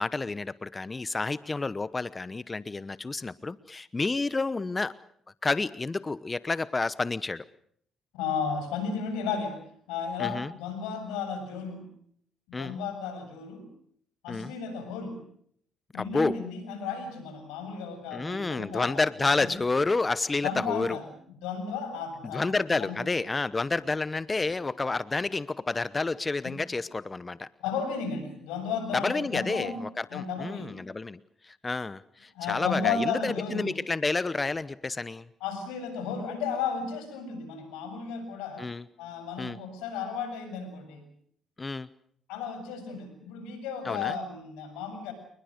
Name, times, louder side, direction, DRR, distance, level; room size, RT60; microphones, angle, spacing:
voice 1, 0.0-4.9 5.4-7.4 10.2-10.5 12.5-12.8 14.3-14.5 16.0-16.4 18.1-21.0 22.3-27.5 28.9-35.3 38.6-38.8 39.4-39.6 41.6-41.9 43.8-44.2, left 3 dB, 25° left, 16 dB, 0.9 m, -30 dB
voice 2, 8.1-9.6 9.9-11.9 12.5-13.7 14.2-15.2 15.9-19.0 19.4-19.5 20.4-21.1 21.4-23.1 26.4-26.6 27.6-29.8 30.1-30.8 32.3-33.7 35.4-38.7 39.0-41.1 42.3-45.1, left 6 dB, 90° left, 8 dB, 7.1 m, -34 dB
28.5 x 21.0 x 6.6 m, 0.66 s
supercardioid pair, 65°, 0 cm